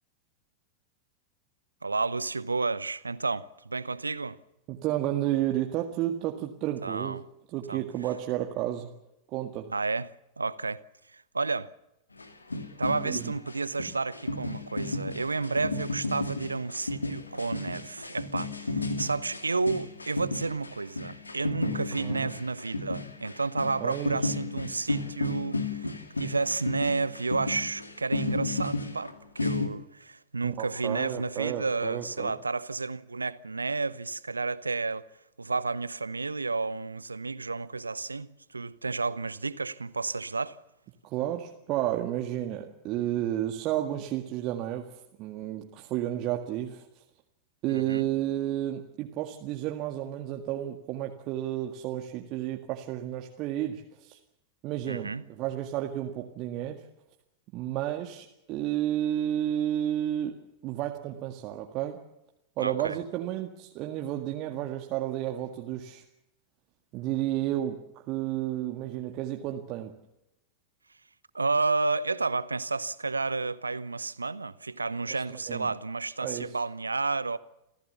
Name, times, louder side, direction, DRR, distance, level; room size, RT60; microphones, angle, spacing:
voice 1, 1.8-4.4 6.8-7.2 7.7-7.8 9.7-10.8 11.1-11.7 12.8-35.0 35.4-40.6 47.7-48.1 54.9-55.2 62.6-63.0 71.3-77.4, right 3 dB, 80° right, 0.9 m, -31 dB
voice 2, 4.7-7.2 7.5-8.9 9.3-9.7 13.0-13.3 21.6-22.3 23.8-24.3 30.4-32.3 41.0-47.0 47.6-54.2 54.6-56.8 57.5-62.0 62.6-66.0 66.9-67.8 68.1-69.9 75.3-75.7 76.2-76.6, right 12 dB, 40° right, 1.9 m, -32 dB
sound 1, 12.2-29.7, left 2 dB, 80° left, 2.3 m, -33 dB
28.5 x 15.5 x 7.0 m
figure-of-eight pair, 90°, 0 cm